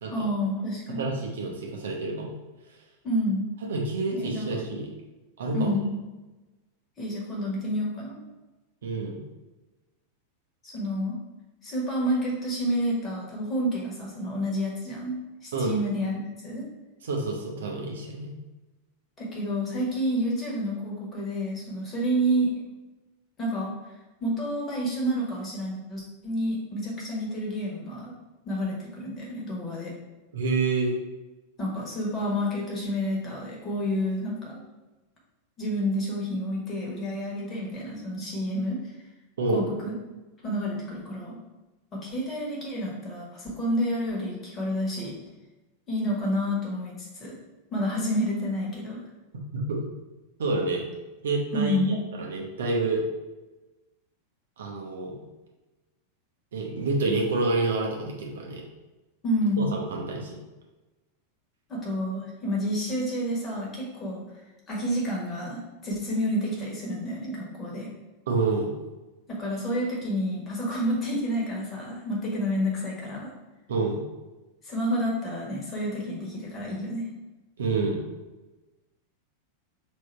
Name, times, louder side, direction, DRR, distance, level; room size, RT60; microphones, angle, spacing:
voice 1, 0.1-1.1 3.0-3.5 4.1-4.5 5.5-5.9 7.0-8.2 10.6-11.2 11.6-16.6 19.2-22.5 23.4-23.7 24.2-28.1 28.4-29.9 31.6-34.6 35.6-38.8 39.5-39.9 40.4-41.4 41.9-45.1 45.9-46.9 47.2-47.3 47.7-49.0 51.5-52.0 59.2-59.7 61.7-64.2 64.7-67.9 69.3-73.3 74.6-77.1, equal, 25° left, -3 dB, 1.3 m, -29 dB
voice 2, 1.0-2.3 3.7-4.9 5.4-5.7 8.8-9.2 15.5-15.7 17.0-18.4 30.3-31.0 39.4-39.7 49.5-49.8 50.4-50.8 51.2-53.0 54.6-55.2 56.5-58.6 59.6-60.4 68.3-68.7 73.7-74.0 77.6-78.0, right 3 dB, 60° right, -1 dB, 0.7 m, -28 dB
3.6 x 2.6 x 4.3 m, 1.1 s
figure-of-eight pair, 90°, 0 cm